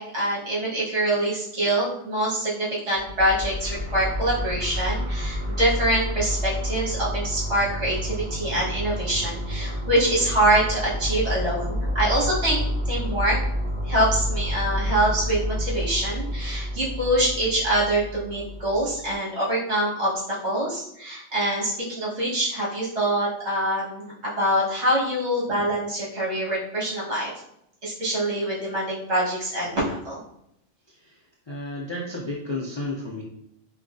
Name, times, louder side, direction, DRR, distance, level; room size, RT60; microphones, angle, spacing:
voice 1, 0.0-13.4 13.8-27.3 27.8-30.2, right 1 dB, 65° right, -7 dB, 1.7 m, -25 dB
sound 1, 2.9-19.1, equal, 45° right, 1.7 m, -29 dB
voice 2, 30.9-33.2, left 2 dB, 40° left, -4 dB, 0.3 m, -33 dB
4.9 x 2.2 x 2.5 m, 0.77 s
omnidirectional pair, 1.2 m